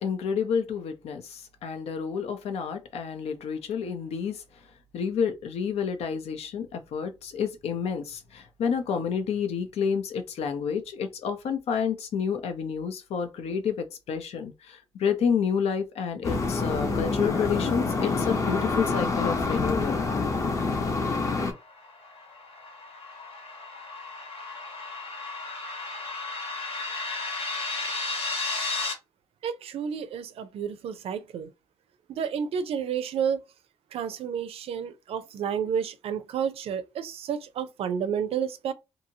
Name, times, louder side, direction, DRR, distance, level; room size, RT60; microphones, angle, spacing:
voice 1, 0.0-4.4 4.9-20.3, left 6 dB, 85° left, 0.7 m, -29 dB
sound 1, 16.2-21.5, left 3 dB, 30° left, 0.7 m, -27 dB
sound 2, 21.4-28.9, left 3 dB, 65° left, 1.1 m, -34 dB
voice 2, 29.4-31.5 32.1-33.4 33.9-38.7, right 7 dB, 70° right, 0.5 m, -30 dB
2.7 x 2.7 x 2.7 m
wide cardioid pair, 155°, 10 cm